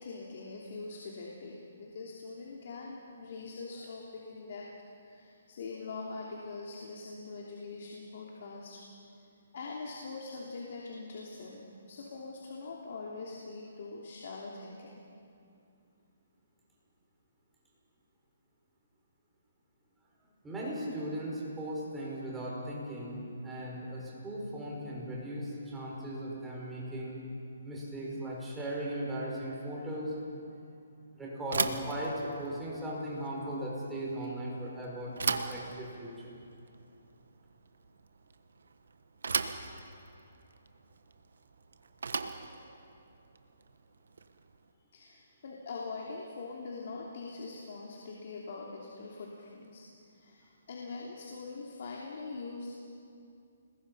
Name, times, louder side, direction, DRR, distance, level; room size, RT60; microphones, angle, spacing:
voice 1, 0.0-4.7 5.0-8.8 9.5-15.0 44.9-49.8 50.1-52.7, left 3 dB, 55° left, -2 dB, 3.1 m, -43 dB
voice 2, 20.4-27.2 27.6-30.1 31.1-36.3 42.5-42.6, right 1 dB, 5° right, -5 dB, 5.6 m, -38 dB
Bicycle / Thump thud, 31.4-44.6, right 4 dB, 85° right, 1.4 m, -38 dB
29.5 x 20.5 x 5.6 m, 2.5 s
hypercardioid pair, 165°, 0 cm